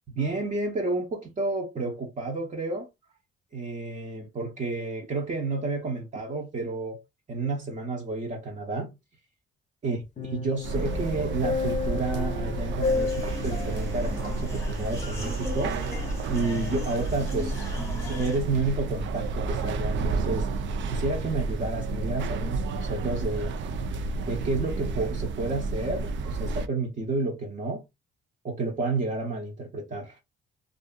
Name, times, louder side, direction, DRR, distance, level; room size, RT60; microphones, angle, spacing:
voice 1, 0.2-2.9 3.5-7.0 7.3-9.0 9.8-15.8 16.3-17.6 18.0-20.5 20.9-23.5 24.1-27.8 28.4-30.2, right 3 dB, 40° right, 0.7 m, -30 dB
sound 1, 10.2-15.6 15.9-16.1, left 4 dB, 40° left, 0.6 m, -33 dB
sound 2, 10.6-26.7, right 3 dB, 70° right, 0.5 m, -31 dB
sound 3, 12.8-18.4, left 2 dB, 15° left, 1.0 m, -39 dB
2.6 x 2.5 x 2.2 m
cardioid pair, 90°, 20 cm